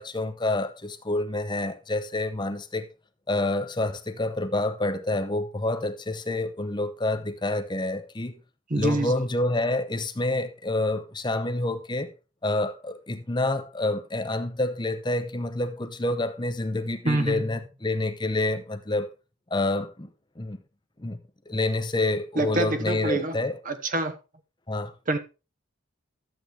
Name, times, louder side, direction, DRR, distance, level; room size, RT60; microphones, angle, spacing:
voice 1, 0.0-2.9 3.3-8.4 8.7-12.1 12.4-19.1 19.5-20.1 20.4-20.6 21.0-21.2 21.5-23.6 24.7-24.9, left 2 dB, 20° left, 0.8 m, -28 dB
voice 2, 8.7-9.1 17.0-17.6 22.3-23.4 23.7-24.2 25.1-25.2, right 2 dB, 35° right, 1.0 m, -26 dB
12.5 x 7.9 x 3.4 m
head